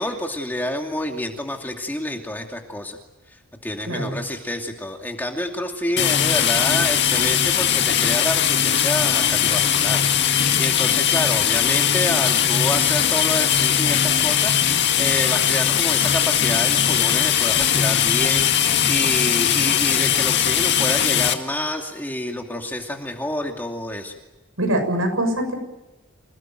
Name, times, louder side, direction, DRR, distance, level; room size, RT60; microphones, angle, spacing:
voice 1, 0.0-3.0 3.3-10.0 10.6-24.1, left 1 dB, 10° left, 2 dB, 2.5 m, -28 dB
sound 1, 6.0-21.3, left 9 dB, 55° left, 2.0 m, -19 dB
voice 2, 24.6-25.5, right 1 dB, 85° right, 6 dB, 7.0 m, -23 dB
28.0 x 18.5 x 9.3 m, 1.0 s
head